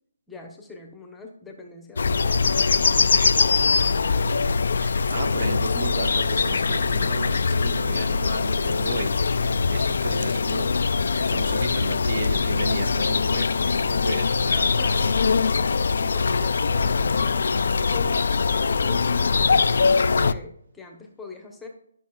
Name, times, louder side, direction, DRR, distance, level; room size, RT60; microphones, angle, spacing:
voice 1, 0.3-2.7 14.7-17.5 17.9-21.7, left 4 dB, 5° left, 3 dB, 0.9 m, -42 dB
sound 1, 2.0-20.3, left 4 dB, 70° left, 0.3 m, -22 dB
voice 2, 4.0-4.5 4.8-10.7 11.2-14.7, right 2 dB, 60° right, 6 dB, 1.4 m, -33 dB
11.5 x 6.0 x 2.3 m, 0.69 s
hypercardioid pair, 155°, 0 cm